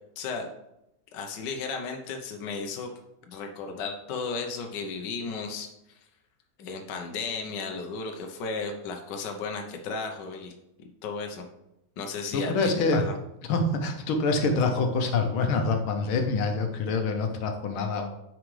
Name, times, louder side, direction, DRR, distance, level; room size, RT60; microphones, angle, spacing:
voice 1, 0.2-0.5 1.1-2.9 3.3-5.7 6.6-10.5 10.8-11.4 12.0-12.5 12.9-13.1, left 4 dB, 65° left, 3 dB, 1.4 m, -34 dB
voice 2, 12.3-13.0 13.5-18.1, left 3 dB, 80° left, 5 dB, 1.7 m, -26 dB
9.3 x 5.1 x 3.2 m, 0.86 s
omnidirectional pair, 2.3 m